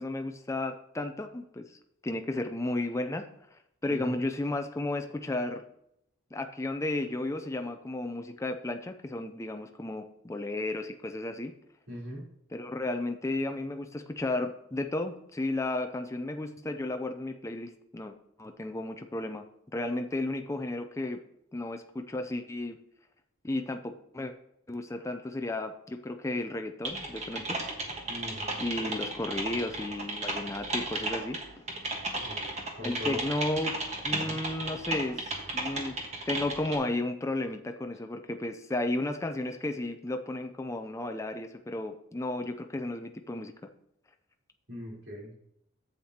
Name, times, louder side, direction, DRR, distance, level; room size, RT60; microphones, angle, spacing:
voice 1, 0.0-1.7 2.0-3.3 3.8-5.6 6.3-11.5 12.5-18.1 18.4-19.4 19.7-21.2 21.5-22.8 23.4-24.3 24.7-27.6 28.6-31.4 32.8-35.9 36.3-43.5, left 2 dB, 15° left, 6 dB, 0.5 m, -33 dB
voice 2, 11.9-12.2 28.1-29.0 32.2-33.2 34.1-34.4 44.7-45.3, left 1 dB, 60° right, -4 dB, 3.9 m, -41 dB
Typing, 26.8-36.8, right 2 dB, 30° right, 1.4 m, -34 dB
11.5 x 8.1 x 2.9 m, 0.76 s
head